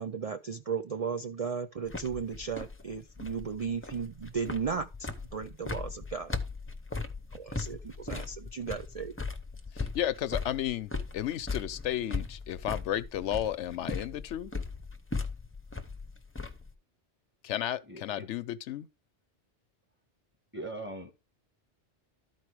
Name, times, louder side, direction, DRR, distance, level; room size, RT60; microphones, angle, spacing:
voice 1, 0.0-6.4 7.3-9.1, right 6 dB, 50° right, 0.5 m, -35 dB
sound 1, 1.9-16.7, left 3 dB, 15° left, 0.7 m, -38 dB
voice 2, 9.7-14.5 17.4-18.9, left 11 dB, 85° left, 1.0 m, -33 dB
voice 3, 17.9-18.3 20.5-21.3, right 2 dB, 10° right, 1.3 m, -41 dB
12.5 x 4.6 x 4.6 m
omnidirectional pair, 1.2 m